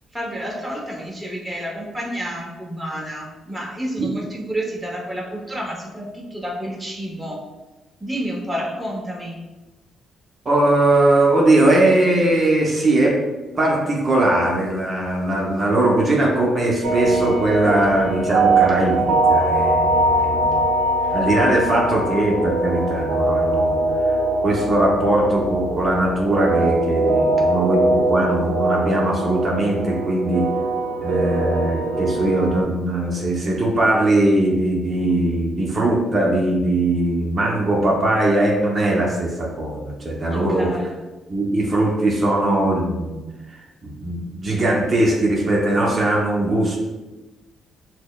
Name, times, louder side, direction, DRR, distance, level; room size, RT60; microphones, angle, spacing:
voice 1, 0.1-7.4 8.0-9.4 21.0-21.2 40.3-40.9, equal, 10° right, -3 dB, 0.9 m, -30 dB
voice 2, 10.4-13.2 13.6-20.6 21.1-23.8 24.4-30.5 31.0-40.7 41.3-43.2 43.5-46.8, right 1 dB, 35° right, -3 dB, 0.8 m, -20 dB
sound 1, 16.8-32.6, right 2 dB, 90° right, 0.5 m, -21 dB
5.9 x 2.1 x 2.3 m, 1.1 s
cardioid pair, 90°, 0 cm